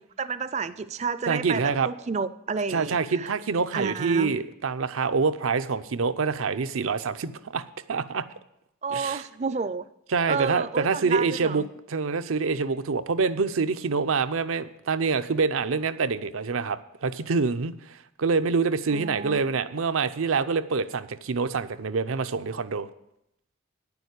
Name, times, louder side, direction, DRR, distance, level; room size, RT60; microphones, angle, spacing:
voice 1, 0.0-3.3 3.7-4.3 8.8-9.9 10.3-11.7 18.9-19.4, right 5 dB, 35° right, 15 dB, 0.4 m, -31 dB
voice 2, 1.3-1.9 2.7-7.6 7.9-8.2 8.9-9.2 10.1-22.9, right 4 dB, 85° right, 11 dB, 0.6 m, -26 dB
10.0 x 7.0 x 8.1 m, 0.82 s
head